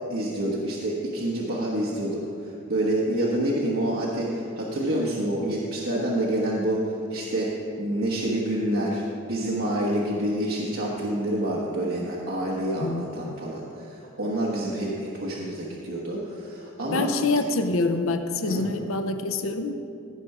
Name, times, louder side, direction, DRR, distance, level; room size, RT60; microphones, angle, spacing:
voice 1, 0.0-17.1 18.4-18.6, right 1 dB, 65° right, -5 dB, 1.2 m, -27 dB
voice 2, 12.8-13.4 16.9-19.7, left 3 dB, 70° left, 8 dB, 0.6 m, -26 dB
16.0 x 5.5 x 4.8 m, 2.7 s
head